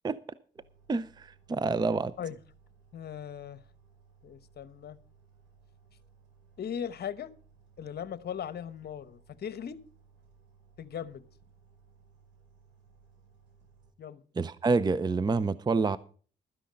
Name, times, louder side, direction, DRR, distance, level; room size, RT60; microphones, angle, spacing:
sound 1, 0.6-13.9, right 5 dB, 65° right, 4.1 m, -61 dB
voice 1, 0.9-2.1 14.4-16.0, right 4 dB, 20° right, 0.5 m, -27 dB
voice 2, 2.9-3.6 4.2-5.0 6.6-7.3 7.8-9.8 10.8-11.2 14.0-14.2, left 8 dB, 55° left, 1.0 m, -38 dB
12.5 x 10.0 x 5.2 m
cardioid pair, 90°, 20 cm